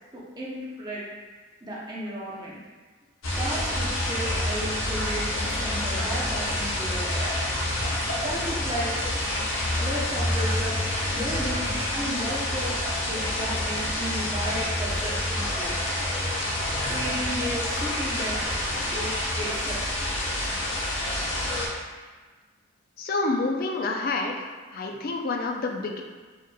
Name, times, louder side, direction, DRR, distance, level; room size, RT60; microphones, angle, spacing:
voice 1, 0.1-1.0 1.6-2.6 3.3-7.3 8.2-9.1 9.7-15.8 16.9-18.4 18.8-19.8, equal, 20° right, -6 dB, 0.6 m, -34 dB
sound 1, 3.2-21.7, left 1 dB, 75° left, 0.8 m, -28 dB
voice 2, 23.0-24.4 24.7-26.0, left 3 dB, 45° left, 2 dB, 0.4 m, -28 dB
4.6 x 3.0 x 2.2 m, 1.4 s
head